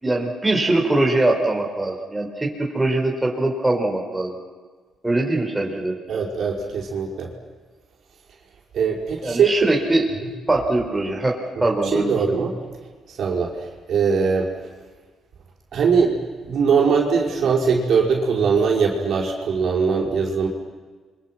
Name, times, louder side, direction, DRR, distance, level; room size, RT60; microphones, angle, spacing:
voice 1, 0.0-4.4 5.0-6.0 9.2-10.1 10.5-12.4, right 2 dB, 15° right, 0 dB, 4.9 m, -22 dB
voice 2, 6.1-7.3 8.7-9.7 11.9-12.5 13.2-13.5 13.9-14.5 15.7-16.2 16.4-20.5, right 5 dB, 65° right, -1 dB, 5.2 m, -21 dB
30.0 x 24.5 x 6.0 m, 1.5 s
cardioid pair, 90°, 0 cm